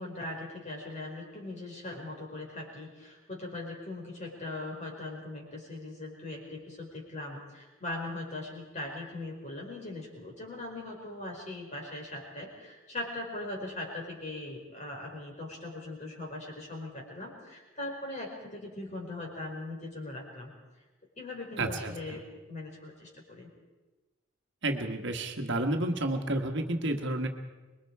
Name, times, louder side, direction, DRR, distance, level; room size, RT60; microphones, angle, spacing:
voice 1, 0.0-20.5 21.2-23.5, left 2 dB, 35° left, 0 dB, 5.2 m, -40 dB
voice 2, 21.6-21.9 24.6-27.3, right 1 dB, 55° right, 4 dB, 1.6 m, -30 dB
25.5 x 22.0 x 4.8 m, 1.2 s
head